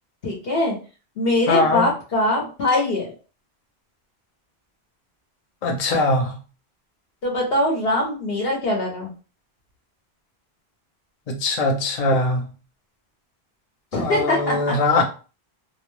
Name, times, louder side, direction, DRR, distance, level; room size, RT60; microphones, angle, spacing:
voice 1, 0.2-0.8 1.2-3.1 7.2-9.1 13.9-14.7, left 1 dB, 70° left, 1.0 m, -22 dB
voice 2, 1.5-1.9 5.6-6.4 11.3-12.5 13.9-15.0, left 2 dB, 45° left, 0.6 m, -21 dB
2.5 x 2.1 x 3.1 m
omnidirectional pair, 1.1 m